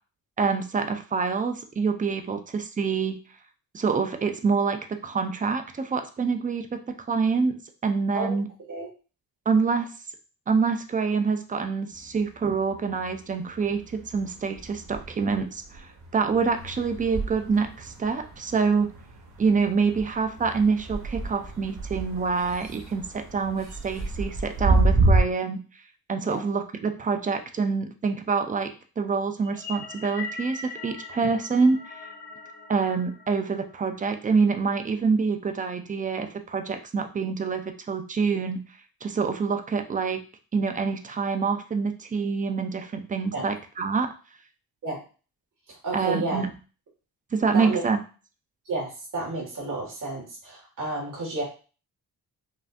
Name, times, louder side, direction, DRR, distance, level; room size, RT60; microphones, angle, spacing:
voice 1, 0.4-3.2 3.7-6.8 7.1-7.6 7.8-8.5 9.5-9.9 10.5-18.9 19.4-25.6 26.1-31.9 32.7-38.6 39.0-40.2 40.5-44.1 45.9-46.5 47.3-48.0, right 5 dB, 20° right, 6 dB, 0.4 m, -26 dB
sound 1, 11.9-13.2 13.5-25.2, right 2 dB, 75° right, 1.5 m, -29 dB
sound 2, 29.4-34.0, left 4 dB, 80° left, 1.0 m, -41 dB
voice 2, 45.7-46.4 47.5-47.8 48.7-51.4, right 2 dB, 55° right, -4 dB, 1.9 m, -31 dB
5.5 x 2.5 x 2.5 m, 0.36 s
wide cardioid pair, 150°, 39 cm